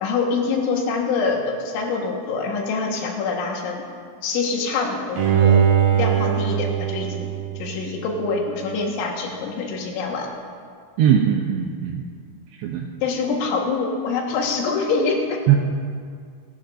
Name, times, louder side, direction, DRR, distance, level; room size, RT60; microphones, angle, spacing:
voice 1, 0.0-3.9 4.2-5.6 5.9-7.3 7.6-10.3 13.0-15.4, left 4 dB, 75° left, 0 dB, 3.7 m, -25 dB
Bowed string instrument, 5.2-8.3 8.7-8.8, right 9 dB, 65° right, 2.6 m, -21 dB
voice 2, 11.0-12.0 12.6-12.9 15.5-15.6, right 10 dB, 80° right, 2 dB, 2.5 m, -19 dB
27.0 x 12.5 x 2.6 m, 2.1 s
omnidirectional pair, 5.6 m